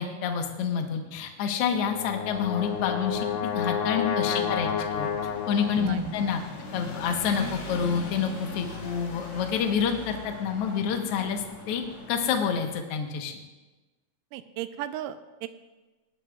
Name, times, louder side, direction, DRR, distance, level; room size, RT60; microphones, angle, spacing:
voice 1, 0.0-3.3 3.5-5.1 5.5-6.4 6.7-11.8 12.1-13.4, left 7 dB, 65° left, 4 dB, 1.5 m, -28 dB
Brass instrument, 1.7-6.0, left 7 dB, 85° left, 2.5 m, -30 dB
sound 1, 2.3-12.7, left 2 dB, 45° left, 2.4 m, -41 dB
voice 2, 4.3-4.9 5.8-6.1 14.3-15.5, right 11 dB, 80° right, 11 dB, 2.1 m, -36 dB
18.5 x 11.5 x 2.3 m, 1.2 s
omnidirectional pair, 4.0 m